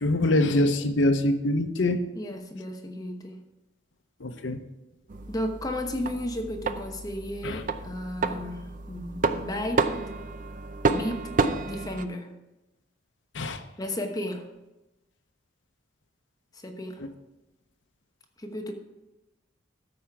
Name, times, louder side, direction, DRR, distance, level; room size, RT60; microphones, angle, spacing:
voice 1, 0.0-2.0 4.2-4.6 7.4-7.6 13.3-13.6, left 1 dB, 80° left, 7 dB, 0.8 m, -24 dB
voice 2, 2.1-3.4 5.3-9.9 10.9-11.3 11.6-12.3 13.8-14.5 16.5-17.1 18.4-18.7, left 1 dB, 20° left, 4 dB, 1.0 m, -34 dB
sound 1, 5.1-12.0, right 3 dB, 45° right, 0.5 m, -30 dB
13.0 x 5.1 x 5.8 m, 1.0 s
head